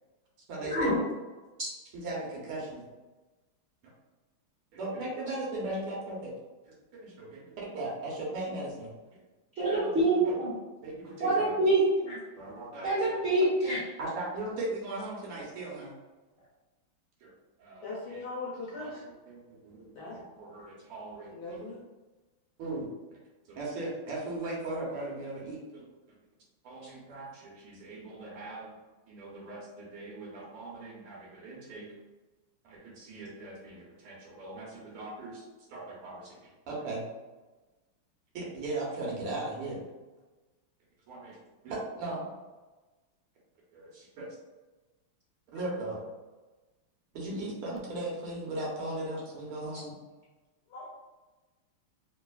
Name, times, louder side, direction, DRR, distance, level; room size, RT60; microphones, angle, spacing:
voice 1, 0.5-1.0 1.9-2.8 4.7-6.3 6.6-8.9 9.6-10.4 10.8-11.6 12.4-13.3 14.0-15.9 17.2-17.3 17.6-18.2 18.8-21.6 22.6-22.9 23.5-25.8 26.6-28.7 29.1-31.9 32.6-35.4 35.7-37.0 38.3-39.8 41.1-41.4 41.6-42.3 43.7-44.3 45.5-46.0 47.1-49.9, right 2 dB, 85° right, -4 dB, 1.9 m, -38 dB
voice 2, 9.6-10.5 11.2-12.2 12.8-13.8, right 2 dB, 35° right, -11 dB, 1.5 m, -26 dB
voice 3, 17.8-19.0 19.9-20.2 21.3-21.8 50.7-50.9, left 2 dB, 70° left, -6 dB, 1.8 m, -39 dB
3.6 x 3.4 x 2.3 m, 1.2 s
omnidirectional pair, 2.3 m